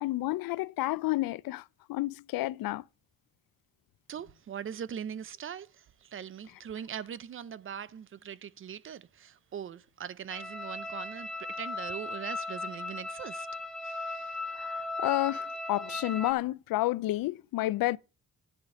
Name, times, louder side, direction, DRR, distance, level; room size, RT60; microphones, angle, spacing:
voice 1, 0.0-1.6 1.9-2.8 14.6-18.0, left 17 dB, 90° left, 0.5 m, -30 dB
voice 2, 4.1-13.5 13.8-14.4, right 8 dB, 40° right, 0.4 m, -41 dB
sound 1, 10.3-16.3, left 2 dB, ahead, 0.7 m, -37 dB
10.5 x 5.1 x 7.5 m
wide cardioid pair, 170°, 34 cm